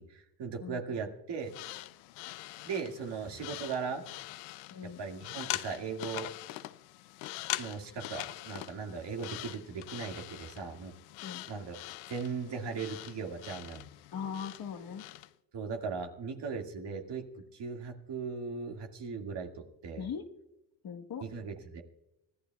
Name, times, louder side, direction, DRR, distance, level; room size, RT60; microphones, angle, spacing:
voice 1, 0.0-1.5 2.6-4.0 5.0-6.3 7.6-10.9 11.5-11.7 12.1-13.8 15.5-17.2 17.5-20.1 21.2-21.8, right 5 dB, 55° right, 3 dB, 2.2 m, -38 dB
sound 1, 1.4-15.3, left 18 dB, 75° left, 0.6 m, -43 dB
voice 2, 4.7-5.0 11.2-11.4 14.1-15.0 20.0-20.2 20.8-21.2, left 7 dB, 45° left, 4 dB, 1.4 m, -39 dB
24.5 x 14.5 x 2.3 m, 0.92 s
hypercardioid pair, 65°, 49 cm